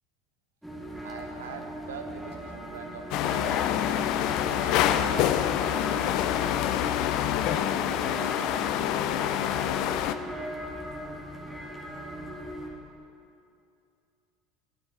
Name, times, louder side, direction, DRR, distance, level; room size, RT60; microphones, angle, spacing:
sound 1, 0.6-12.7, equal, 5° right, 2.2 m, -39 dB
voice 1, 0.9-3.6 3.9-7.1 7.5-9.8, right 5 dB, 75° right, 5 dB, 0.9 m, -45 dB
sound 2, 3.1-10.2, left 11 dB, 55° left, 0.4 m, -26 dB
12.5 x 9.9 x 4.2 m, 2.6 s
figure-of-eight pair, 70°, 0 cm